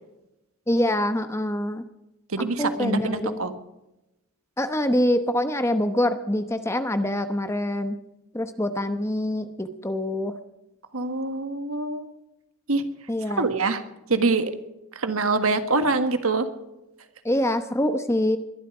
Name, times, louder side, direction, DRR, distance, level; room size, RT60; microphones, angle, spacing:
voice 1, 0.7-1.8 2.4-3.4 4.6-8.0 8.3-10.3 13.1-13.5 17.2-18.4, left 1 dB, 15° left, 9 dB, 0.9 m, -25 dB
voice 2, 2.3-3.5 10.9-12.1 12.7-12.8 13.4-13.8 14.1-14.5 14.9-16.5, right 3 dB, 90° right, 9 dB, 1.6 m, -24 dB
21.5 x 12.0 x 4.9 m, 0.94 s
head